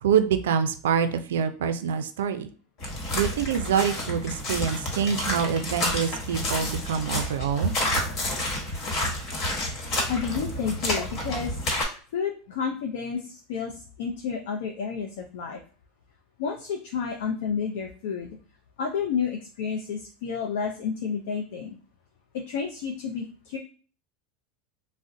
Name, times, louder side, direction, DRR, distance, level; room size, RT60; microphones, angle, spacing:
voice 1, 0.0-2.5 3.1-7.7, right 7 dB, 85° right, 9 dB, 0.3 m, -25 dB
sound 1, 2.8-11.8, left 1 dB, 45° left, 1.2 m, -30 dB
voice 2, 10.1-11.6 12.1-15.6 16.4-18.4 18.8-21.8 22.3-23.6, left 6 dB, 75° left, 3 dB, 0.4 m, -30 dB
2.5 x 2.0 x 3.7 m, 0.40 s
supercardioid pair, 110°, 0 cm